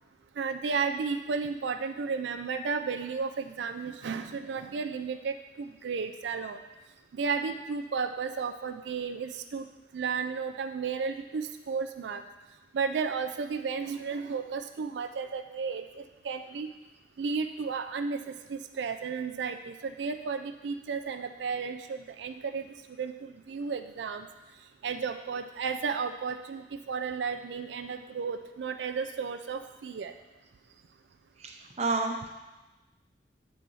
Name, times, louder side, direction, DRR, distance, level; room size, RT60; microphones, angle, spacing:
voice 1, 0.4-6.6 7.1-9.7 9.9-12.2 12.7-16.7 17.2-22.7 23.0-24.3 24.8-30.1, right 5 dB, 80° right, 7 dB, 0.4 m, -33 dB
voice 2, 31.4-32.3, right 3 dB, 40° right, 2 dB, 0.8 m, -30 dB
8.2 x 4.0 x 6.2 m, 1.1 s
head